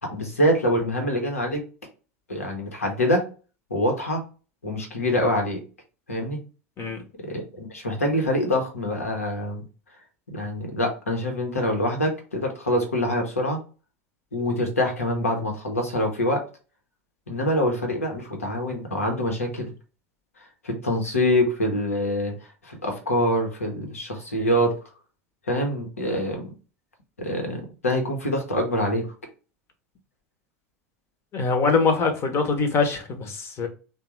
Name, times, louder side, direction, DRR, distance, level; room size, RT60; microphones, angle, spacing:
voice 1, 0.0-1.6 2.3-3.3 3.7-4.2 4.6-5.6 6.1-6.4 7.2-9.6 10.3-13.6 14.3-16.4 17.3-19.7 20.4-24.8 25.5-26.5 27.2-29.1, left 1 dB, 85° left, 3 dB, 1.2 m, -25 dB
voice 2, 31.3-33.7, left 4 dB, 35° left, 6 dB, 1.1 m, -23 dB
3.4 x 2.5 x 4.5 m, 0.36 s
figure-of-eight pair, 85°, 8 cm